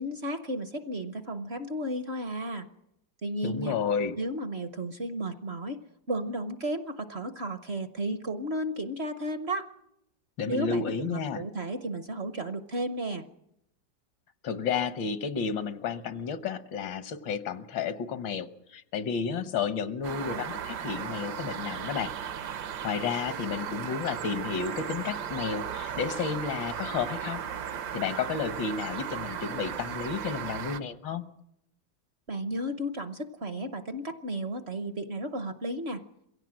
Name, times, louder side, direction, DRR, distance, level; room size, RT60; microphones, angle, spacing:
voice 1, 0.0-2.7 3.2-3.8 4.2-5.8 6.1-9.7 10.5-13.2 32.3-36.0, right 1 dB, 45° right, 10 dB, 0.9 m, -33 dB
voice 2, 3.4-4.2 10.4-11.4 14.4-22.1 22.8-27.4 27.9-31.2, left 6 dB, 85° left, 12 dB, 1.8 m, -32 dB
sound 1, 20.0-30.8, right 8 dB, 65° right, 1.5 m, -36 dB
23.0 x 16.5 x 7.6 m, 0.79 s
omnidirectional pair, 2.0 m